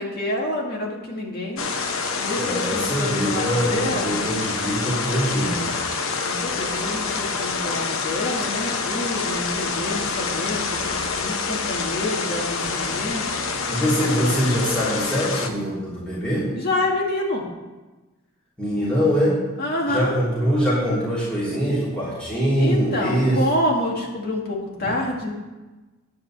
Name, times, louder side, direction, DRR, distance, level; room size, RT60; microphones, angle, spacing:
voice 1, 0.0-1.7 2.2-4.2 6.2-13.2 14.1-14.4 16.6-17.4 19.6-20.2 22.6-25.3, left 1 dB, 50° left, -1 dB, 1.8 m, -27 dB
sound 1, 1.6-15.5, left 4 dB, 75° left, 0.8 m, -27 dB
voice 2, 2.3-5.7 13.7-16.4 18.6-19.3 19.9-23.4, equal, 5° left, -10 dB, 3.0 m, -23 dB
9.6 x 5.1 x 7.3 m, 1.2 s
head